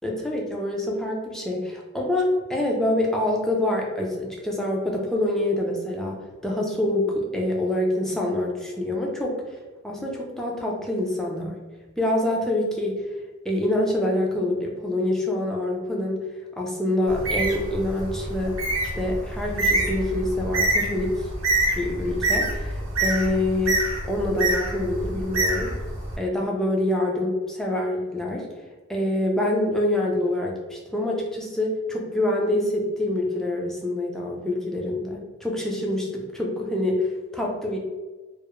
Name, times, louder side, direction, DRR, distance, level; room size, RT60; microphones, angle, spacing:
voice 1, 0.0-9.6 9.8-11.6 12.0-13.1 13.4-16.2 16.6-18.5 18.9-21.3 21.8-23.8 24.1-25.7 26.2-28.5 28.9-37.8, left 1 dB, ahead, -2 dB, 0.3 m, -26 dB
Bird, 17.1-26.2, right 2 dB, 70° right, 0.6 m, -26 dB
2.3 x 2.0 x 2.9 m, 1.2 s
head